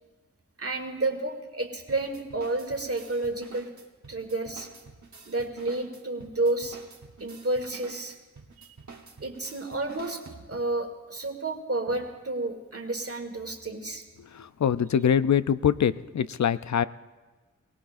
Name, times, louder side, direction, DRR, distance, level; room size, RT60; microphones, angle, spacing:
voice 1, 0.6-3.7 4.1-4.7 5.2-6.8 7.2-8.2 8.6-8.7 9.2-10.2 10.5-14.0, right 2 dB, 50° right, 4 dB, 1.7 m, -30 dB
sound 1, 1.9-10.8, right 4 dB, 65° right, 1.2 m, -49 dB
voice 2, 14.3-16.8, left 8 dB, 65° left, 15 dB, 0.4 m, -24 dB
23.0 x 17.5 x 2.5 m, 1.3 s
wide cardioid pair, 45°, 31 cm